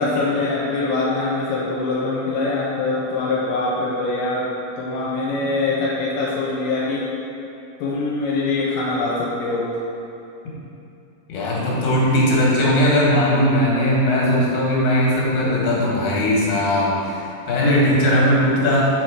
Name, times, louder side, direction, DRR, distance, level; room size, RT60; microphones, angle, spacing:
voice 1, 0.0-4.5 4.8-7.1 7.8-9.7, left 3 dB, 85° left, -6 dB, 2.8 m, -23 dB
voice 2, 11.3-17.2 17.5-18.9, left 1 dB, 70° left, -5 dB, 2.9 m, -18 dB
7.0 x 4.3 x 4.7 m, 2.7 s
omnidirectional pair, 4.5 m